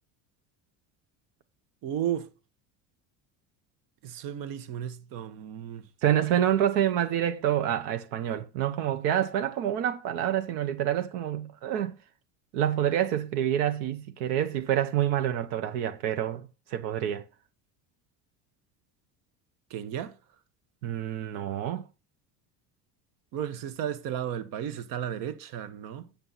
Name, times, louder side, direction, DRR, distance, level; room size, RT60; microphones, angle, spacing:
voice 1, 1.8-2.3 4.0-5.9 19.7-20.1 23.3-26.1, right 10 dB, 60° right, 1.4 m, -34 dB
voice 2, 6.0-12.0 12.5-17.2 20.8-21.9, right 10 dB, 75° right, 1.2 m, -27 dB
8.7 x 7.7 x 4.1 m
cardioid pair, 165°, 38 cm